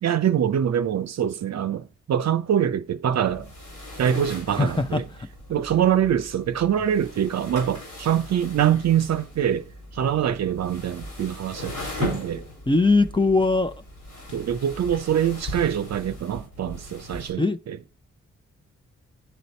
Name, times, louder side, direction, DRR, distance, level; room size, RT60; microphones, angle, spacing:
voice 1, 0.0-3.5 4.0-5.1 5.5-12.4 14.3-17.8, right 9 dB, 60° right, 0.6 m, -24 dB
sound 1, 3.2-17.3, left 2 dB, 80° left, 4.7 m, -38 dB
voice 2, 4.5-5.0 12.7-13.7 17.4-17.6, left 3 dB, 15° left, 0.7 m, -20 dB
10.5 x 4.0 x 4.3 m
supercardioid pair, 40°, 30 cm